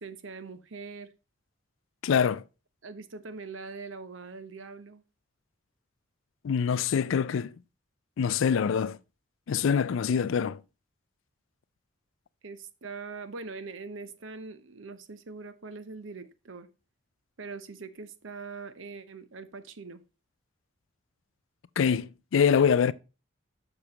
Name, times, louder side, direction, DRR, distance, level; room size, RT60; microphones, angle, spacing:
voice 1, 0.0-1.1 2.8-5.0 12.4-16.7 17.4-20.0, right 4 dB, 75° right, 0.8 m, -42 dB
voice 2, 2.0-2.4 6.4-7.5 8.2-9.0 9.5-10.6 21.8-22.9, left 7 dB, 75° left, 0.4 m, -24 dB
6.9 x 6.0 x 4.1 m
head